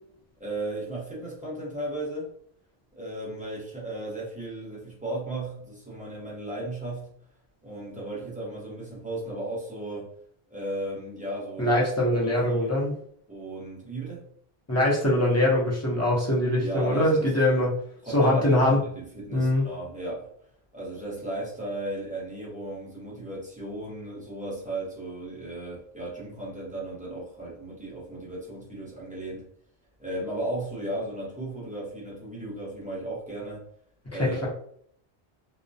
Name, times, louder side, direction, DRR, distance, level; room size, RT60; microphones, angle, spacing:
voice 1, 0.4-2.3 3.0-7.1 7.6-10.1 10.5-11.8 12.2-12.8 13.3-14.2 16.6-17.3 18.0-20.3 20.7-29.5 30.0-33.7 34.1-34.5, right 1 dB, 10° right, -7 dB, 0.8 m, -35 dB
voice 2, 11.6-12.9 14.7-17.7 18.1-18.8 19.3-19.7 34.4-34.5, left 1 dB, 20° left, -5 dB, 0.5 m, -22 dB
2.3 x 2.1 x 2.6 m, 0.63 s
omnidirectional pair, 1.1 m